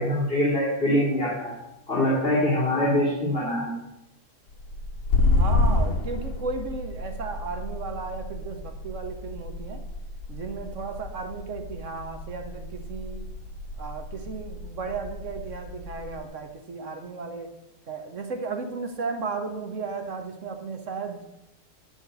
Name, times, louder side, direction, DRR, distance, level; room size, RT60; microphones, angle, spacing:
voice 1, 0.0-1.6 1.9-3.7, left 1 dB, 35° left, -5 dB, 2.9 m, -24 dB
sound 1, 4.5-16.3, left 2 dB, 60° left, 1.5 m, -30 dB
voice 2, 5.4-9.8 10.3-13.3 13.8-17.5 17.9-21.4, right 4 dB, 50° right, 5 dB, 1.5 m, -34 dB
10.5 x 5.3 x 8.0 m, 0.88 s
omnidirectional pair, 1.7 m